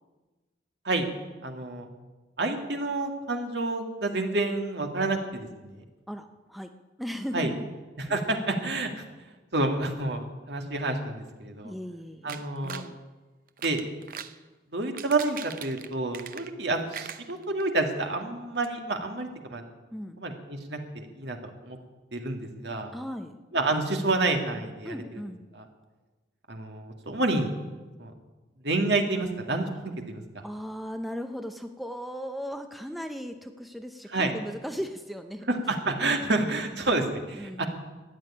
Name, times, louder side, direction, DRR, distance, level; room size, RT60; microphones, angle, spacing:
voice 1, 1.4-1.9 2.4-5.8 7.3-7.5 8.0-9.0 9.5-11.7 12.2-12.8 13.6-13.8 14.7-19.6 20.2-21.4 21.6-21.8 22.1-22.9 23.5-25.2 25.6-25.7 26.5-27.5 28.0-28.1 28.6-29.7 30.1-30.4 34.1-34.3 35.5-37.6, right 2 dB, 70° right, 4 dB, 2.1 m, -29 dB
voice 2, 6.1-6.7 7.0-7.7 11.6-13.0 19.9-20.2 22.9-23.4 24.8-25.4 30.4-35.5 35.9-36.9 37.3-37.6, equal, ahead, 6 dB, 0.7 m, -37 dB
sound 1, 12.3-12.9 13.5-14.4 14.8-16.6 16.9-17.8 18.2-18.3 18.6-18.7, right 8 dB, 50° right, 0.7 m, -41 dB
14.0 x 9.6 x 9.9 m, 1.2 s
head